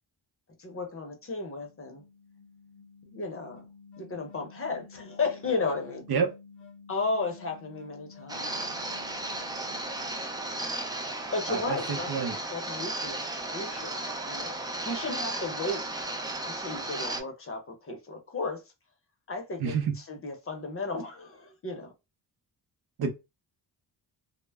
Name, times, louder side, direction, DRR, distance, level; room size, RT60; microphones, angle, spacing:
voice 1, 0.6-2.0 3.1-3.6 4.0-6.0 6.9-9.2 11.3-12.1 12.5-13.9 14.2-15.8 16.5-18.6 19.3-21.9, left 3 dB, 30° left, 0.7 m, -34 dB
sound 1, 1.2-11.4, left 5 dB, 80° left, 0.7 m, -52 dB
sound 2, 8.3-17.2, right 2 dB, 10° right, 0.3 m, -35 dB
voice 2, 11.5-12.4 19.6-19.9 23.0-23.1, right 6 dB, 60° right, 0.6 m, -28 dB
2.1 x 2.0 x 3.3 m
cardioid pair, 100°, 43 cm